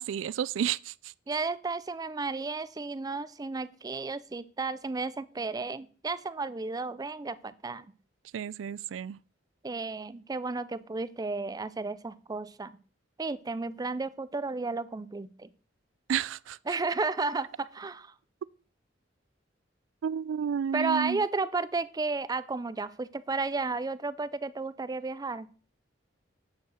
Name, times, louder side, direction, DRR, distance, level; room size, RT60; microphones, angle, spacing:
voice 1, 0.0-1.1 8.3-9.2 16.1-16.6 20.0-21.2, right 8 dB, 85° right, 0.3 m, -31 dB
voice 2, 1.3-7.9 9.6-12.8 13.2-15.5 16.7-18.1 20.7-25.5, right 3 dB, 20° right, 0.4 m, -33 dB
9.4 x 4.5 x 6.3 m
head